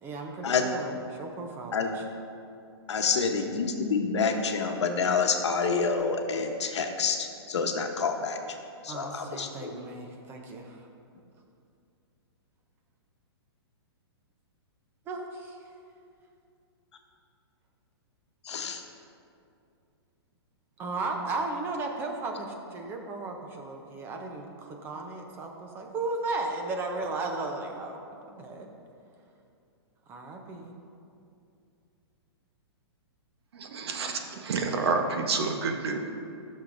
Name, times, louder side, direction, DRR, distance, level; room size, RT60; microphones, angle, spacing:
voice 1, 0.0-2.1 8.9-10.8 15.1-15.6 20.8-28.0 28.3-28.7 30.1-30.7, right 3 dB, 15° right, 3 dB, 0.6 m, -35 dB
voice 2, 2.9-8.4 8.8-9.7 18.5-18.8, left 5 dB, 90° left, 4 dB, 1.0 m, -28 dB
voice 3, 33.5-36.0, right 4 dB, 65° right, 4 dB, 0.9 m, -29 dB
13.5 x 6.4 x 2.6 m, 2.5 s
hypercardioid pair, 160°, 14 cm